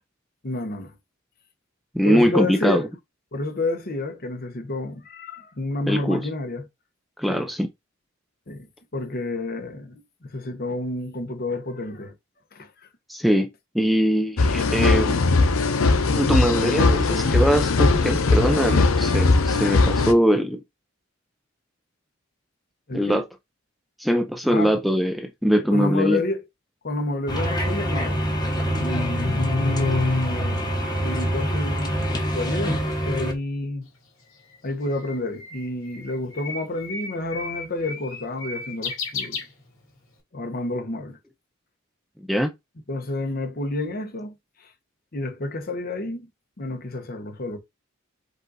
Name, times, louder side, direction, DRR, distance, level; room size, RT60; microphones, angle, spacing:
voice 1, 0.4-1.0 2.0-2.9 3.3-6.7 7.3-7.5 8.5-8.7 8.9-12.1 12.5-12.7 22.9-23.2 24.5-24.7 25.7-26.4 26.8-28.2 28.7-33.9 34.6-39.4 40.3-41.2 42.9-44.7 45.1-46.3 46.6-47.6, left 2 dB, 45° left, 0.9 m, -29 dB
voice 2, 1.9-2.8 5.9-6.2 7.2-7.7 13.1-13.5 13.7-15.2 16.2-20.6 22.9-23.2 24.0-26.2 42.3-42.5, equal, ahead, 0.4 m, -22 dB
sound 1, 14.4-20.1, left 3 dB, 90° left, 0.7 m, -19 dB
sound 2, 27.3-33.3, equal, 20° left, 1.1 m, -25 dB
Bird, 33.9-40.1, left 4 dB, 70° left, 2.7 m, -35 dB
5.2 x 2.5 x 4.0 m
head